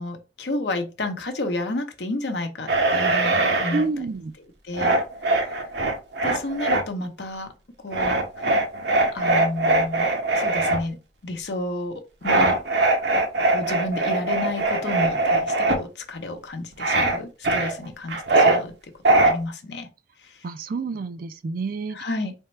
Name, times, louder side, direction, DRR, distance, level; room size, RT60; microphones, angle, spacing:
voice 1, 0.0-3.8 4.4-5.0 5.3-5.6 6.2-7.5 7.8-8.5 9.1-11.0 11.2-12.6 13.1-13.2 13.5-18.7 19.1-19.9 20.2-20.5 21.9-22.3, left 2 dB, 70° left, 0.8 m, -31 dB
sound 1, 2.7-3.8 4.7-6.8 7.9-10.8 12.2-15.8 16.8-17.2 17.4-18.6 19.0-19.3, right 2 dB, 70° right, 0.7 m, -21 dB
voice 2, 3.7-4.3 20.4-22.0, right 3 dB, 55° right, 0.4 m, -28 dB
3.5 x 2.2 x 4.2 m
head